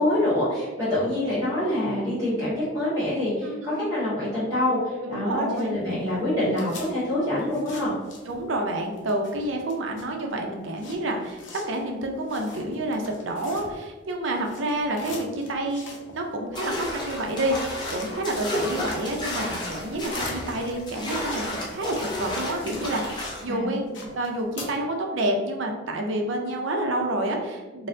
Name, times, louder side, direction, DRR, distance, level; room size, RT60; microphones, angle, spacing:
voice 1, 0.0-7.9 23.5-24.1, left 1 dB, 20° right, -10 dB, 1.1 m, -26 dB
voice 2, 3.4-3.8 5.0-5.7 8.3-27.9, right 1 dB, 70° right, 2 dB, 0.5 m, -29 dB
sound 1, 5.3-8.6 8.9-14.1 14.3-23.4 23.7-24.7, left 3 dB, 70° left, 0.7 m, -44 dB
sound 2, 16.6-23.5, left 1 dB, 20° left, 0.4 m, -32 dB
4.1 x 2.1 x 2.6 m, 1.3 s
head